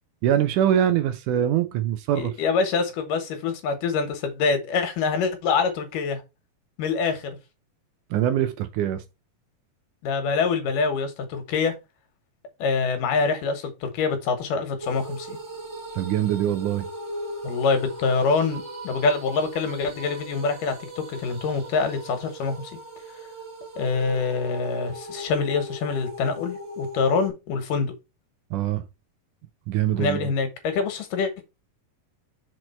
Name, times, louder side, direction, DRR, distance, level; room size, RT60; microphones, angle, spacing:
voice 1, 0.2-2.3 8.1-9.0 15.9-16.9 28.5-28.8 29.7-30.3, right 10 dB, 75° right, 2.1 m, -23 dB
voice 2, 2.1-6.2 6.8-7.3 10.0-11.7 12.6-15.4 17.4-22.6 23.8-27.9 30.0-31.4, left 4 dB, 75° left, 3.0 m, -25 dB
sound 1, 14.8-27.3, right 1 dB, 40° right, 2.2 m, -38 dB
6.3 x 4.7 x 4.3 m
omnidirectional pair, 3.9 m